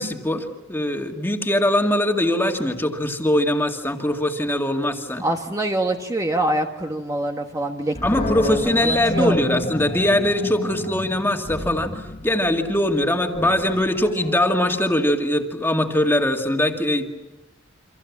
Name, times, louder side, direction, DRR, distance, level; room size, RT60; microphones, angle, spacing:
voice 1, 0.0-5.2 8.0-17.1, left 1 dB, 10° left, 3 dB, 2.2 m, -21 dB
voice 2, 5.2-9.3, right 1 dB, 15° right, 3 dB, 1.3 m, -25 dB
Animal, 7.9-15.1, left 2 dB, 35° left, 1.3 m, -31 dB
29.0 x 26.0 x 7.4 m, 1.0 s
head